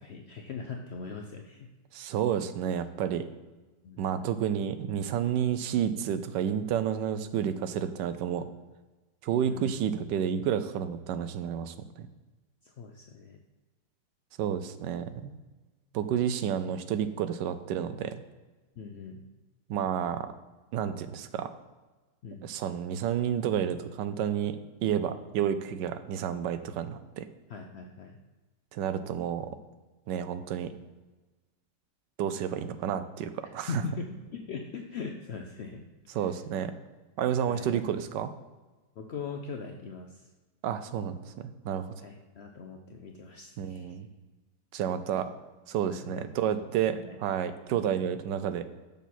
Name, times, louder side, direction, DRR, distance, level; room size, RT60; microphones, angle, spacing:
voice 1, 0.0-1.7 3.8-4.2 9.4-9.7 12.6-13.4 18.8-19.2 22.2-22.5 27.5-28.2 33.7-35.9 36.1-36.2 37.5-37.8 39.0-40.3 42.0-44.0 45.9-47.2, left 5 dB, 80° left, 3 dB, 0.5 m, -41 dB
voice 2, 1.9-3.2 4.0-8.5 9.2-12.1 14.4-15.3 15.9-18.1 19.7-20.3 20.7-21.5 22.4-24.6 24.8-27.3 28.7-29.5 30.1-30.7 32.2-33.7 36.1-36.7 37.2-38.3 40.6-41.9 43.6-44.1 44.7-45.3 45.7-48.7, right 9 dB, 80° right, 11 dB, 1.2 m, -30 dB
6.8 x 6.3 x 4.2 m, 1.2 s
omnidirectional pair, 1.9 m